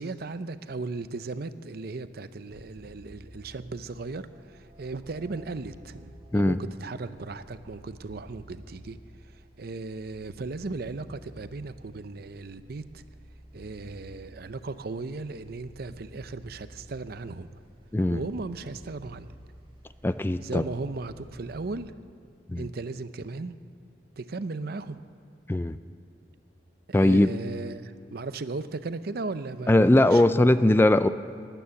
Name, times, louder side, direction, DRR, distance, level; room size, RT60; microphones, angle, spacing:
voice 1, 0.0-9.0 9.6-13.0 13.5-17.5 18.1-19.3 20.4-21.9 22.6-23.5 24.2-25.0 26.9-30.2, right 3 dB, 60° right, 12 dB, 0.6 m, -36 dB
sound 1, 2.5-21.7, equal, 30° right, 1.9 m, -51 dB
voice 2, 20.0-20.6 22.5-22.7 25.5-25.8 26.9-27.3 29.7-31.1, left 1 dB, 10° left, 12 dB, 0.3 m, -20 dB
19.5 x 9.2 x 7.0 m, 2.5 s
head